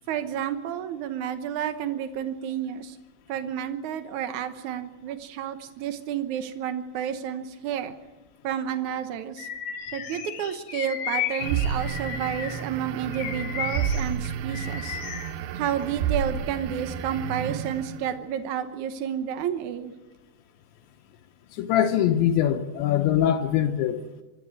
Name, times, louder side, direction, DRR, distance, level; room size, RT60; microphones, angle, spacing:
voice 1, 0.1-3.0 3.3-7.9 8.4-9.5 9.9-15.0 15.5-19.9, right 9 dB, 90° right, 9 dB, 1.6 m, -30 dB
Bird vocalization bird call bird song, 9.4-12.7 13.1-15.3, left 9 dB, 60° left, 2.5 m, -34 dB
sound 1, 11.4-18.1, right 8 dB, 70° right, 2.5 m, -31 dB
voice 2, 21.5-24.0, left 10 dB, 80° left, 5 dB, 3.3 m, -22 dB
25.0 x 13.5 x 9.6 m, 1.2 s
omnidirectional pair, 5.2 m